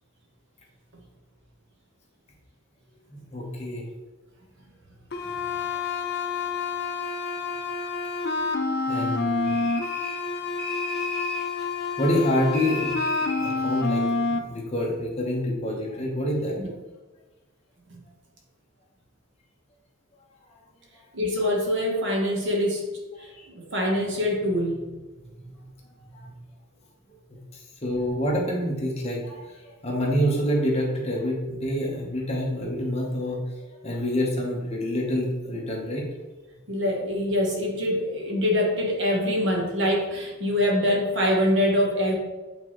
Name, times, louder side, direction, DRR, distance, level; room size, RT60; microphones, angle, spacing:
voice 1, 3.1-3.8 8.9-9.5 12.0-13.0 13.4-14.0 14.3-16.6 23.2-23.5 27.5-33.4 33.7-36.0, equal, 30° left, -2 dB, 1.2 m, -27 dB
sound 1, 5.1-14.4, left 4 dB, 50° left, 0.6 m, -28 dB
sound 2, 9.4-10.3 10.6-11.5 12.5-13.6, right 1 dB, 10° left, 1.5 m, -35 dB
voice 2, 21.1-22.9 23.2-23.3 23.5-24.9 36.7-42.1, left 1 dB, 60° right, 0 dB, 1.3 m, -24 dB
8.4 x 3.7 x 3.2 m, 1.2 s
head